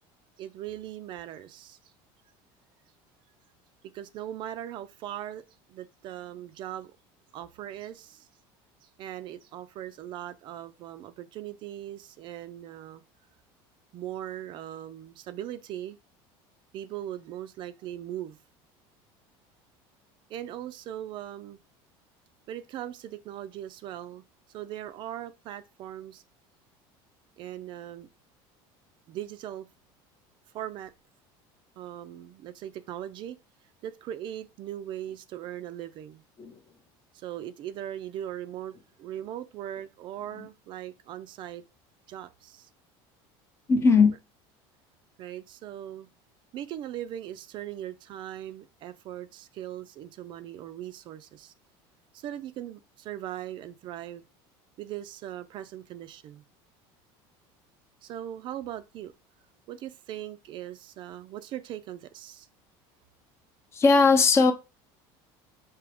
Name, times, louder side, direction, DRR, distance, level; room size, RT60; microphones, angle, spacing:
voice 1, 0.4-1.9 3.9-6.9 7.3-8.3 8.8-13.0 13.9-16.0 16.7-18.4 20.3-21.6 22.5-24.2 24.5-26.2 27.4-28.1 29.1-29.7 30.5-30.9 31.8-33.4 33.8-36.2 37.1-41.6 42.1-42.7 45.2-46.1 46.5-51.5 52.1-54.2 54.8-56.4 58.0-59.1 59.7-62.5, right 11 dB, 45° right, 0.4 m, -39 dB
voice 2, 43.7-44.2 63.7-64.5, left 4 dB, 25° left, 0.5 m, -19 dB
4.7 x 2.8 x 3.4 m
cardioid pair, 145°, 12 cm